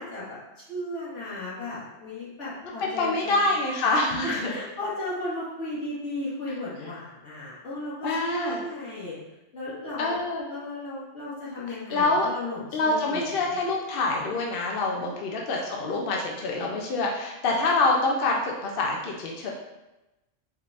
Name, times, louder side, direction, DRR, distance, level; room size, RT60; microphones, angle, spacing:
voice 1, 0.0-3.5 4.2-9.2 9.5-10.2 10.5-13.6 15.0-15.2, left 1 dB, 75° left, -8 dB, 1.8 m, -35 dB
voice 2, 2.6-4.5 8.0-8.6 10.0-10.5 11.9-12.3 12.7-19.5, left 2 dB, 55° left, -1 dB, 0.7 m, -26 dB
4.5 x 3.6 x 2.5 m, 0.99 s
omnidirectional pair, 1.3 m